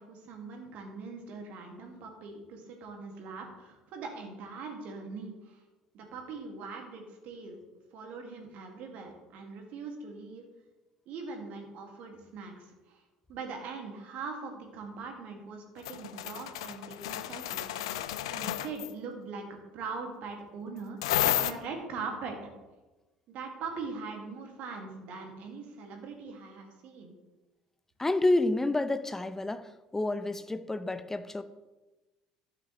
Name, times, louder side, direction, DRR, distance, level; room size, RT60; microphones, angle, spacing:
voice 1, 0.0-5.6 5.9-7.6 7.9-10.4 11.1-13.0 13.3-22.5 23.3-27.1, right 4 dB, 55° right, 2 dB, 2.1 m, -42 dB
sound 1, 15.8-18.9 21.0-21.5, left 13 dB, 65° left, 0.4 m, -31 dB
voice 2, 28.0-31.4, left 2 dB, 15° left, 12 dB, 0.7 m, -29 dB
12.5 x 9.0 x 3.2 m, 1.1 s
figure-of-eight pair, 60°, 3 cm